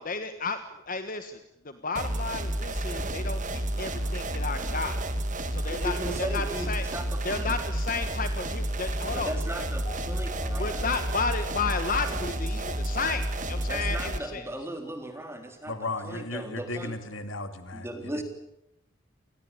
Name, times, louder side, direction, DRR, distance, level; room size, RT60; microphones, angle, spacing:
voice 1, 0.0-1.4 1.6-5.0 5.5-6.8 7.2-9.3 10.6-14.5, left 4 dB, 40° left, 9 dB, 1.3 m, -32 dB
sound 1, 2.0-14.2, right 1 dB, 35° right, 2.0 m, -31 dB
sound 2, 3.7-9.4, right 1 dB, 65° right, 6.9 m, -51 dB
voice 2, 5.7-7.6 9.1-10.9 13.7-16.9 17.7-18.2, right 1 dB, 10° right, 5 dB, 3.6 m, -37 dB
sound 3, 9.8-14.4, left 4 dB, 25° left, 3.8 m, -45 dB
voice 3, 15.7-18.2, left 2 dB, 65° left, 9 dB, 2.5 m, -35 dB
28.5 x 20.0 x 8.7 m, 0.86 s
head